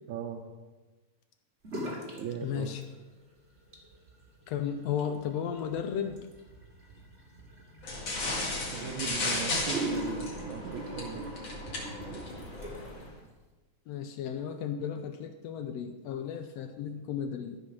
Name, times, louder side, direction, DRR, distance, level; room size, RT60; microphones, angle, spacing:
voice 1, 0.1-0.5 2.2-2.8 8.7-11.3 12.4-12.5, right 8 dB, 80° right, 3 dB, 2.1 m, -39 dB
sound 1, 1.6-2.2 2.5-3.2 3.6-13.0, right 1 dB, 25° right, 1.9 m, -41 dB
voice 2, 2.4-2.8 4.5-6.3 13.9-17.6, left 8 dB, 75° left, 7 dB, 1.6 m, -34 dB
sound 2, 7.8-13.1, left 2 dB, 45° left, 2.6 m, -35 dB
13.5 x 5.5 x 6.0 m, 1.2 s
omnidirectional pair, 3.3 m